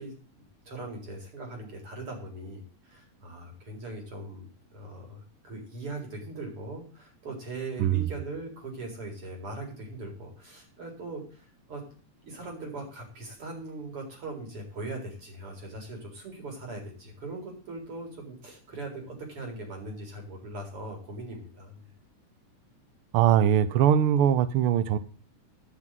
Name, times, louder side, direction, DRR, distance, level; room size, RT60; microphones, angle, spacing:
voice 1, 0.0-11.8 12.2-21.9, right 2 dB, 45° right, 4.9 m, -40 dB
voice 2, 23.1-25.0, right 10 dB, 85° right, 1.2 m, -21 dB
11.5 x 6.1 x 9.0 m
omnidirectional pair, 3.5 m